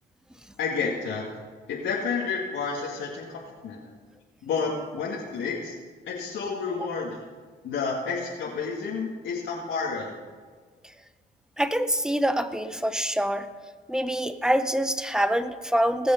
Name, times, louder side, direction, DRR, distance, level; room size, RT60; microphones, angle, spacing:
voice 1, 0.6-1.3 1.7-3.8 4.4-5.7 6.0-7.2 7.6-10.1, left 5 dB, 75° left, -4 dB, 2.0 m, -30 dB
voice 2, 11.6-13.5 13.9-16.1, equal, 5° right, 10 dB, 0.8 m, -25 dB
20.5 x 6.9 x 5.4 m, 1.5 s
cardioid pair, 90°, 20 cm